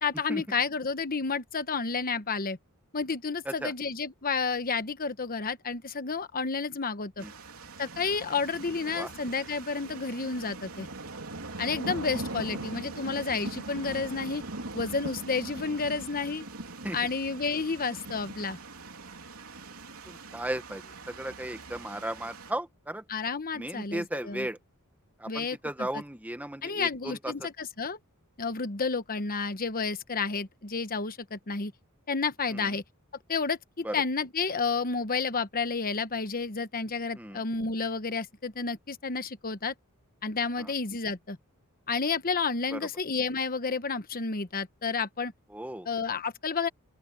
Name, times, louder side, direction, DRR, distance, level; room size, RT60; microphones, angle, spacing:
voice 1, 0.0-2.6 2.9-7.2 7.8-10.9 11.6-14.4 14.7-16.5 16.9-18.6 23.1-24.5 25.3-26.0 26.6-28.0 28.4-31.7 32.1-32.8 33.3-39.7 40.2-41.4 41.9-45.3 45.8-46.7, left 4 dB, 40° left, 1.2 m, -31 dB
sound 1, 7.2-22.5, right 2 dB, 75° right, 3.5 m, -41 dB
voice 2, 20.1-23.0 23.5-24.6 25.2-27.3 32.5-32.7 33.8-33.9 37.2-37.4 40.6-40.7 42.7-42.8 45.5-45.9, right 1 dB, 5° right, 1.5 m, -36 dB
open air
head